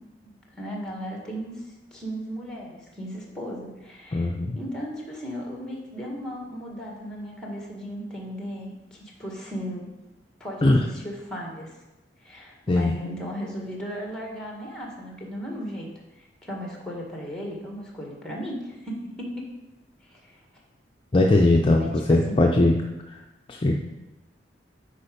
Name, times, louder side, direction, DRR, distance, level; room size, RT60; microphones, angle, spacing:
voice 1, 0.2-9.9 10.4-11.7 12.2-15.9 16.2-19.5 20.1-20.4 21.7-22.4, equal, 5° left, -1 dB, 1.7 m, -36 dB
voice 2, 4.1-4.6 10.6-10.8 12.7-12.9 21.1-22.8 23.1-23.2 23.5-23.8, left 2 dB, 30° left, 1 dB, 0.5 m, -20 dB
8.5 x 5.0 x 5.2 m, 1.0 s
head